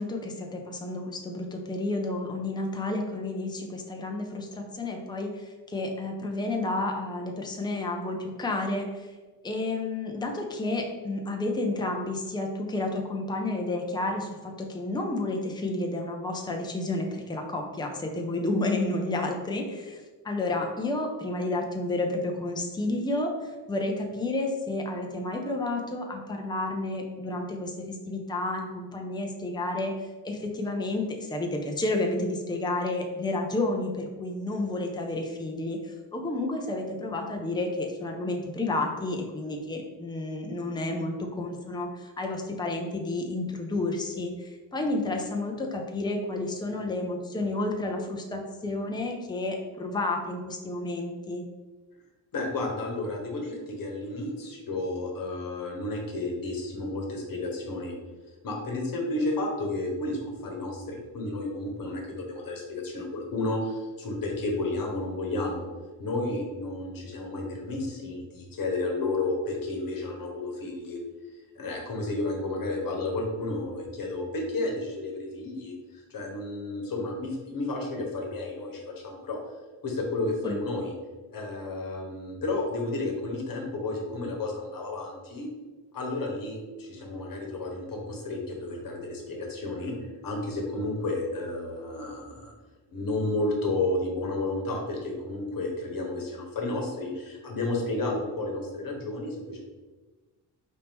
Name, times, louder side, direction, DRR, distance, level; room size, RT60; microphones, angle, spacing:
voice 1, 0.0-9.1 9.4-51.4 80.4-80.6, left 2 dB, 10° left, 2 dB, 0.6 m, -31 dB
voice 2, 52.3-58.0 58.4-65.7 66.0-71.0 71.5-79.4 79.8-80.9 81.3-85.5 85.9-89.9 90.2-92.5 92.9-99.6, left 2 dB, 55° left, 0 dB, 1.2 m, -32 dB
4.1 x 2.8 x 3.6 m, 1.3 s
cardioid pair, 75°, 41 cm